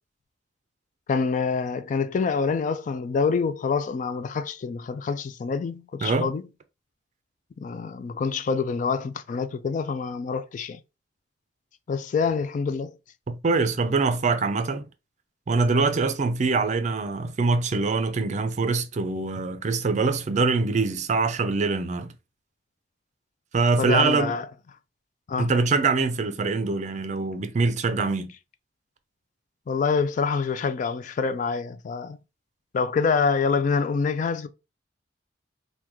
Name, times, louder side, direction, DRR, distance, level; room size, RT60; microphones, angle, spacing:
voice 1, 1.1-6.4 7.6-10.8 11.9-12.9 23.8-24.5 25.3-25.5 29.7-32.2 32.7-34.5, left 5 dB, 45° left, 0.3 m, -26 dB
voice 2, 6.0-6.3 13.3-14.9 15.5-22.1 23.5-24.3 25.4-28.3, right 4 dB, 40° right, 0.4 m, -24 dB
3.5 x 2.2 x 3.0 m
head